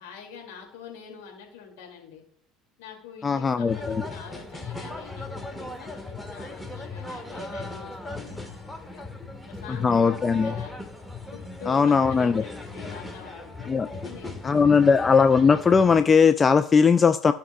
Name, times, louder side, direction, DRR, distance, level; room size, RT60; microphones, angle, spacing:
voice 1, 0.0-2.2 2.8-8.6 8.8-9.0 9.5-10.7 11.3-14.5, left 7 dB, 65° left, 1 dB, 2.3 m, -45 dB
voice 2, 3.2-4.0 9.7-10.5 11.7-12.4 13.7-13.9 14.4-17.3, left 5 dB, 25° left, 10 dB, 0.4 m, -19 dB
sound 1, 3.7-16.0, left 2 dB, 5° left, 1.4 m, -38 dB
15.5 x 5.9 x 2.3 m, 0.66 s
figure-of-eight pair, 65°, 0 cm